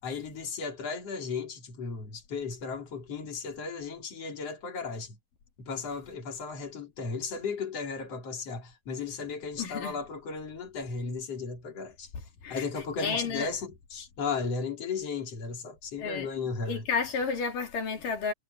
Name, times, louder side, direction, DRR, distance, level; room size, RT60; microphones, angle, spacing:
voice 1, 0.0-5.2 5.6-12.1 12.5-16.9, left 5 dB, 50° left, 4.8 m, -35 dB
voice 2, 9.6-10.0 12.4-12.6 13.0-13.5 16.0-16.3 16.7-18.3, left 5 dB, 85° left, 4.9 m, -31 dB
omnidirectional pair, 3.7 m